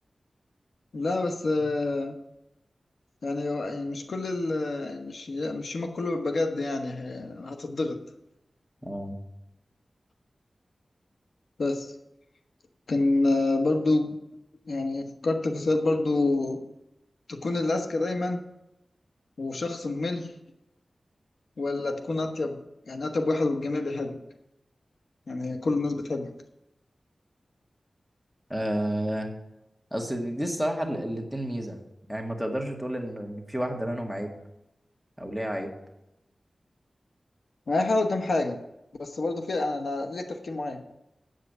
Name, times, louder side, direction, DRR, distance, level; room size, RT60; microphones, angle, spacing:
voice 1, 0.9-2.2 3.2-8.0 11.6-11.9 12.9-14.2 14.7-16.6 17.3-18.4 19.4-20.3 21.6-22.6 22.9-24.2 25.3-26.3 37.7-38.6 39.0-40.8, left 2 dB, 80° left, 5 dB, 1.1 m, -27 dB
voice 2, 8.8-9.2 28.5-29.3 29.9-31.8 32.1-34.3 35.2-35.7, equal, ahead, 3 dB, 1.8 m, -30 dB
8.1 x 7.8 x 6.7 m, 0.88 s
wide cardioid pair, 105°, 0 cm